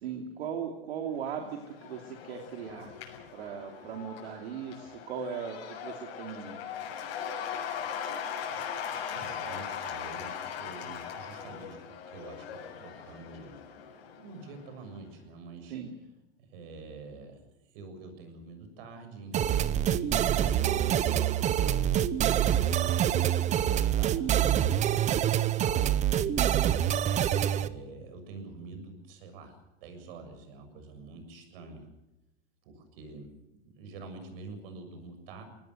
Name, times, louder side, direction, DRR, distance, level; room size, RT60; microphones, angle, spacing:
voice 1, 0.0-3.0 3.3-6.6 15.7-15.9, right 7 dB, 85° right, 2 dB, 3.0 m, -38 dB
Cheering / Applause / Crowd, 1.3-14.7, left 8 dB, 80° left, 6.9 m, -40 dB
voice 2, 8.5-13.6 14.2-15.8 16.4-22.0 22.7-26.4 27.5-31.9 32.6-33.4 33.7-35.4, right 3 dB, 65° right, 7 dB, 7.2 m, -47 dB
sound 1, 19.3-27.7, right 10 dB, 25° right, 0.8 m, -26 dB
23.0 x 18.5 x 8.0 m, 0.96 s
supercardioid pair, 145°, 31 cm